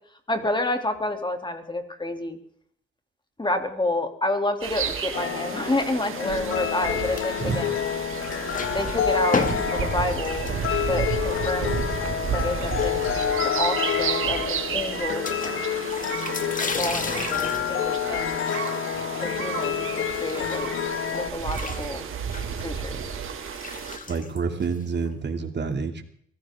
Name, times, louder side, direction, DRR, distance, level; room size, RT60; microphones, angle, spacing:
voice 1, 0.3-2.4 3.4-7.8 8.7-9.4 9.7-10.6 10.9-11.7 12.3-13.0 13.4-15.3 16.8-18.4 19.2-20.7 21.1-22.1 22.6-22.9, left 2 dB, 20° left, 5 dB, 3.0 m, -29 dB
sound 1, 4.6-24.0, right 7 dB, 80° right, 2.2 m, -32 dB
sound 2, 5.1-21.3, left 9 dB, 75° left, 0.8 m, -28 dB
sound 3, 7.0-7.9 8.1-12.0 12.6-13.6 13.9-14.0 14.2-14.3 15.2-20.7 21.1-25.1, left 3 dB, 40° left, 2.5 m, -35 dB
voice 2, 24.1-26.0, right 5 dB, 55° right, 5 dB, 2.7 m, -28 dB
23.0 x 15.5 x 3.8 m, 0.63 s
cardioid pair, 60°, 21 cm